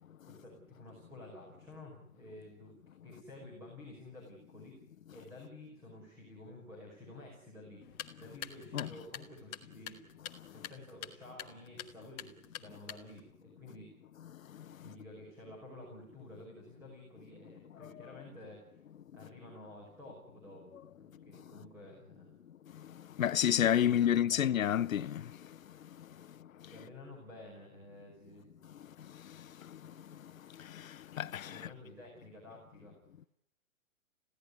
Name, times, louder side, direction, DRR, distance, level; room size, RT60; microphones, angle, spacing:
voice 1, 0.3-2.7 3.0-4.8 5.1-10.0 10.5-14.0 14.8-18.8 19.1-22.4 23.7-24.6 26.6-28.5 31.5-33.0, left 1 dB, 5° right, 5.2 m, -51 dB
sound 1, 7.8-13.3, left 10 dB, 15° left, 1.1 m, -48 dB
voice 2, 23.2-25.3 30.7-31.7, left 10 dB, 70° left, 0.9 m, -29 dB
23.0 x 16.5 x 9.7 m
hypercardioid pair, 165°, 42 cm